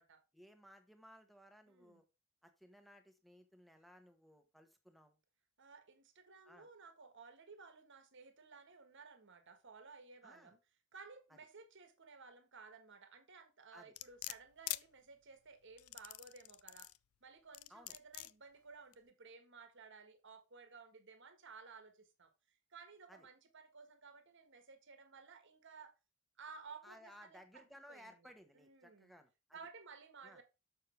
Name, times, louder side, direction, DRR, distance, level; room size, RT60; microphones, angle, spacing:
voice 1, 0.3-2.0 2.4-5.2 6.5-6.7 10.2-10.5 13.7-13.9 17.7-18.0 23.1-23.3 26.8-29.6 30.2-30.4, equal, ahead, 1.3 m, -60 dB
voice 2, 1.7-2.0 5.6-10.6 10.9-16.9 17.2-25.9 26.4-29.1 29.5-30.4, right 4 dB, 60° right, 1.5 m, -57 dB
sound 1, 14.0-14.8 15.8-17.0 17.5-18.3 18.9-19.0, left 17 dB, 85° left, 0.4 m, -44 dB
6.7 x 6.4 x 4.4 m
head